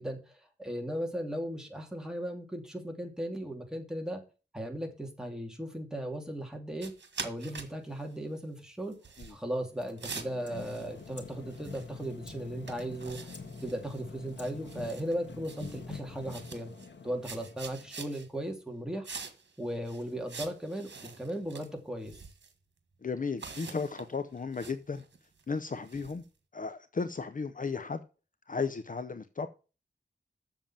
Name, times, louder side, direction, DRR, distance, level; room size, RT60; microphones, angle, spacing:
voice 1, 0.0-4.2 4.5-6.9 7.2-9.0 9.3-13.3 13.6-16.7 17.0-19.1 19.6-22.2, right 1 dB, 5° right, 2.8 m, -37 dB
sound 1, 6.8-7.7 8.0-8.2 8.9-9.3 9.8-11.2 11.5-12.1 12.3-12.4 12.7-14.0 14.3-15.1 15.4-16.0 16.3-16.9 17.2-18.3 19.0-19.5 19.8-21.7 22.0-22.5 23.4-26.2, right 5 dB, 80° right, 1.7 m, -45 dB
sound 2, 9.7-18.0, left 4 dB, 80° left, 1.7 m, -46 dB
voice 2, 23.0-25.0 25.5-26.2 26.5-28.0 28.5-29.5, left 4 dB, 45° left, 0.7 m, -35 dB
7.4 x 7.0 x 7.4 m
wide cardioid pair, 85°, 18 cm